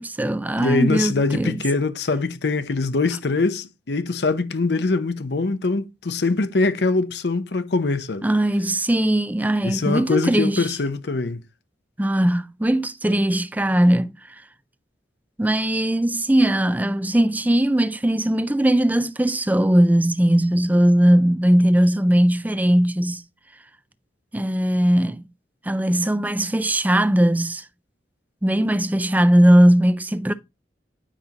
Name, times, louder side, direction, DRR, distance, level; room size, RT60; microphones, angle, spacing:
voice 1, 0.0-1.6 8.2-10.6 12.0-14.1 15.4-23.2 24.3-25.2 25.7-27.6 28.4-30.3, right 1 dB, 10° right, 0.4 m, -19 dB
voice 2, 0.5-8.3 9.6-11.4, left 3 dB, 65° left, 0.7 m, -23 dB
9.8 x 5.5 x 2.9 m
head